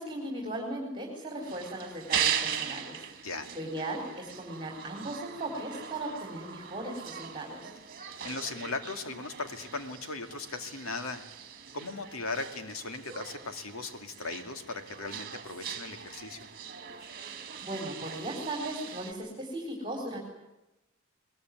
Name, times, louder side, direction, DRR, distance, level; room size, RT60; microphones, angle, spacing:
voice 1, 0.0-3.1 3.5-7.7 17.6-20.2, right 1 dB, 20° right, 1 dB, 4.2 m, -37 dB
sound 1, 1.4-19.1, right 8 dB, 45° right, 2.1 m, -39 dB
voice 2, 8.2-11.2 11.7-16.5, left 3 dB, 70° left, 6 dB, 2.4 m, -38 dB
21.5 x 21.0 x 9.3 m, 0.96 s
head